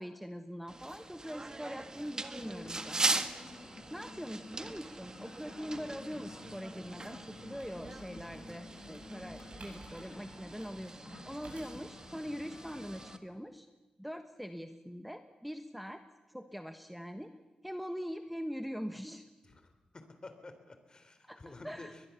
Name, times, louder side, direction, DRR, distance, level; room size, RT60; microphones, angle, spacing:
voice 1, 0.0-3.2 3.5-13.7 14.0-16.0 16.3-17.3 17.6-19.2 21.2-21.9, equal, ahead, 8 dB, 1.2 m, -43 dB
sound 1, 0.7-13.2, right 3 dB, 30° right, 1.4 m, -40 dB
sound 2, 2.3-13.2, left 4 dB, 55° left, 2.0 m, -52 dB
sound 3, 7.6-12.0, right 3 dB, 65° right, 8.0 m, -55 dB
voice 2, 19.4-22.0, left 2 dB, 35° left, 9 dB, 3.5 m, -51 dB
21.5 x 21.5 x 7.1 m, 1.1 s
cardioid pair, 75°, 2 cm